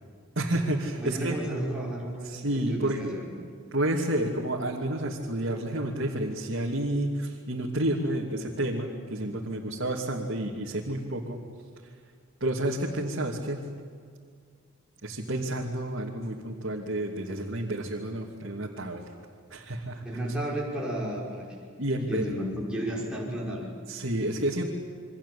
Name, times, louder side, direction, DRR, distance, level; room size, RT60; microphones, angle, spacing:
voice 1, 0.4-1.3 2.2-3.0 3.7-11.4 12.4-13.6 15.0-19.1 19.5-20.0 21.8-22.2 23.9-24.7, right 1 dB, 65° right, -2 dB, 2.9 m, -30 dB
voice 2, 1.0-3.3 20.0-21.6 22.1-23.7, right 1 dB, 5° right, -5 dB, 5.6 m, -33 dB
29.0 x 24.0 x 8.6 m, 2.1 s
head